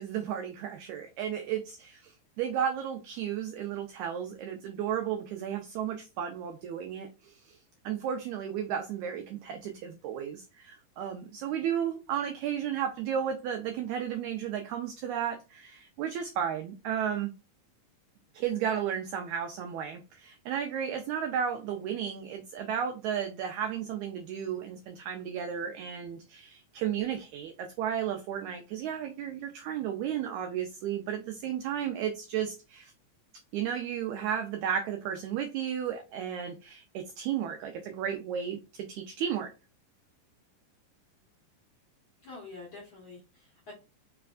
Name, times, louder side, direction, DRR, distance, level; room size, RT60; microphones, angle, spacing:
voice 1, 0.0-7.6 7.8-17.3 18.3-32.9 33.5-39.5, right 9 dB, 90° right, 6 dB, 1.6 m, -33 dB
voice 2, 42.2-43.7, left 3 dB, 55° left, -5 dB, 1.5 m, -46 dB
4.9 x 3.3 x 2.4 m, 0.30 s
omnidirectional pair, 3.9 m